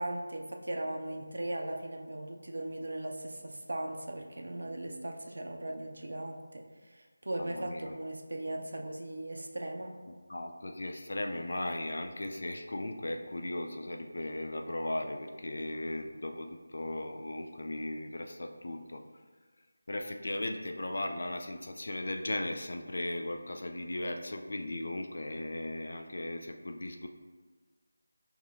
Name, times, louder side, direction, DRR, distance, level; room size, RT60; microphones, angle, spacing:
voice 1, 0.0-9.9, right 1 dB, 75° right, 3 dB, 0.5 m, -38 dB
voice 2, 7.4-8.0 10.3-19.0 19.9-27.1, left 1 dB, 50° left, 4 dB, 0.3 m, -37 dB
5.3 x 2.9 x 2.4 m, 1.4 s
figure-of-eight pair, 180°, 0 cm